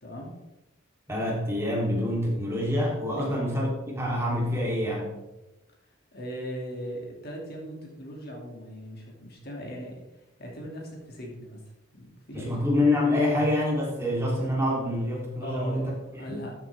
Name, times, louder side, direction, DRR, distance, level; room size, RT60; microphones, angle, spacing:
voice 1, 0.0-0.3 3.2-3.4 6.1-10.0 10.4-11.6 11.9-12.6 14.0-14.1 15.4-16.5, equal, 55° left, -1 dB, 2.8 m, -39 dB
voice 2, 1.1-5.1 12.3-15.9, left 1 dB, 15° right, -4 dB, 3.5 m, -26 dB
13.5 x 8.4 x 3.6 m, 0.97 s
head